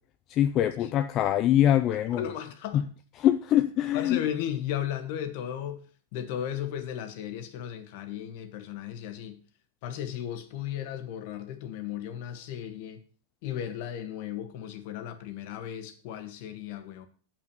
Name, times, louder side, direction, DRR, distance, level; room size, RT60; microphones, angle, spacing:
voice 1, 0.4-2.3 2.7-2.8 3.2-4.2, left 11 dB, 35° left, 0.5 m, -23 dB
voice 2, 1.9-2.9 3.9-5.8 6.1-9.4 9.8-13.0 13.4-17.1, left 10 dB, 55° left, 1.6 m, -35 dB
8.3 x 6.0 x 6.9 m
supercardioid pair, 145°, 0 cm